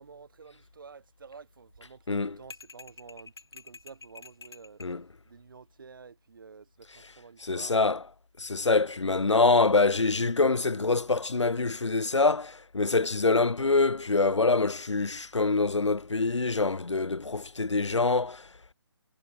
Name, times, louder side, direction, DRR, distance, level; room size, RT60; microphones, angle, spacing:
voice 1, 0.0-4.8 5.2-7.7 8.5-8.8 14.1-14.5, right 5 dB, 50° right, 4.1 m, -50 dB
sound 1, 2.5-5.0, left 4 dB, 60° left, 2.2 m, -48 dB
voice 2, 7.4-8.0 8.4-18.5, left 3 dB, 85° left, 0.6 m, -25 dB
figure-of-eight pair, 145°, 15 cm